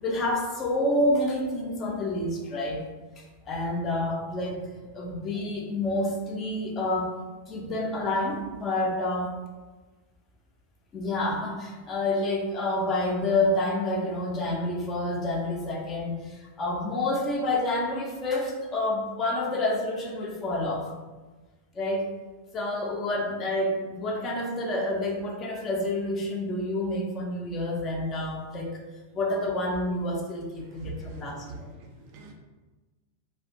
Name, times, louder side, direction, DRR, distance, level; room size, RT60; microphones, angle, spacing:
voice 1, 0.0-2.8 3.5-7.2 7.5-9.3 10.9-20.9 21.8-22.0 22.5-28.8 29.1-31.7, left 1 dB, 25° left, 1 dB, 0.4 m, -28 dB
voice 2, 30.7-32.3, right 2 dB, 45° right, 2 dB, 0.4 m, -42 dB
2.4 x 2.1 x 2.4 m, 1.2 s
figure-of-eight pair, 90°, 0 cm